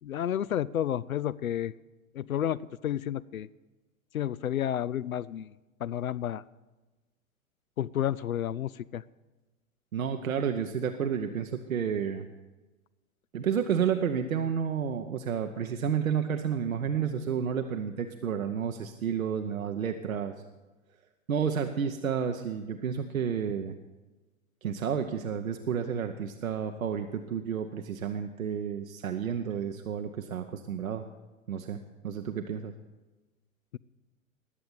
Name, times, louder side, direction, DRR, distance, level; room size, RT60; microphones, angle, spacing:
voice 1, 0.0-1.7 2.1-3.5 4.1-5.5 5.8-6.4 7.8-9.0, left 10 dB, 80° left, 19 dB, 0.5 m, -31 dB
voice 2, 9.9-12.3 13.3-20.3 21.3-23.8 24.6-31.0 31.5-31.8 32.0-32.7, right 7 dB, 75° right, 6 dB, 0.9 m, -31 dB
20.0 x 7.9 x 7.0 m, 1.2 s
figure-of-eight pair, 95°, 41 cm